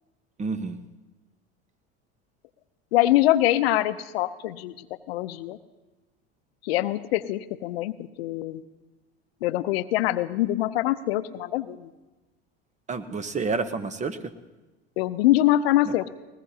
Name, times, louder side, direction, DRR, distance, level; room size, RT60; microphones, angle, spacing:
voice 1, 0.4-0.8 12.9-14.3 15.8-15.9, right 4 dB, 25° right, 12 dB, 0.9 m, -29 dB
voice 2, 2.9-5.6 6.6-8.6 9.4-11.9 15.0-16.1, left 14 dB, 80° left, 13 dB, 0.7 m, -24 dB
20.0 x 20.0 x 2.8 m, 1.1 s
hypercardioid pair, 95°, 30 cm